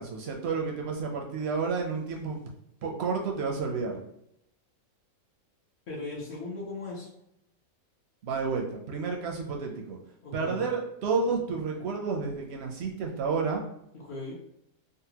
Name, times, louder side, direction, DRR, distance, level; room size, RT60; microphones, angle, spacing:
voice 1, 0.0-2.4 2.8-4.0 8.2-10.0 10.3-13.6, right 4 dB, 65° right, 1 dB, 0.6 m, -30 dB
voice 2, 5.9-7.1 10.2-10.6 13.9-14.3, left 3 dB, 65° left, -4 dB, 1.0 m, -38 dB
3.8 x 2.1 x 2.8 m, 0.79 s
omnidirectional pair, 1.5 m